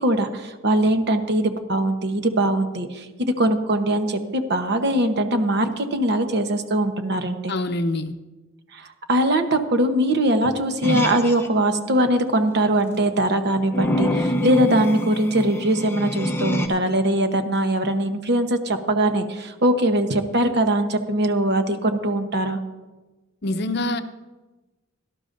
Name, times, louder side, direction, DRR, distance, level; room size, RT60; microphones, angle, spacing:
voice 1, 0.0-7.5 8.7-22.6, right 1 dB, 55° right, 7 dB, 1.0 m, -21 dB
voice 2, 7.5-8.1 23.4-24.0, left 2 dB, 55° left, 10 dB, 0.7 m, -25 dB
sound 1, 10.8-11.5 13.7-16.7, equal, 10° left, 0.7 m, -25 dB
17.5 x 12.5 x 2.6 m, 1.2 s
head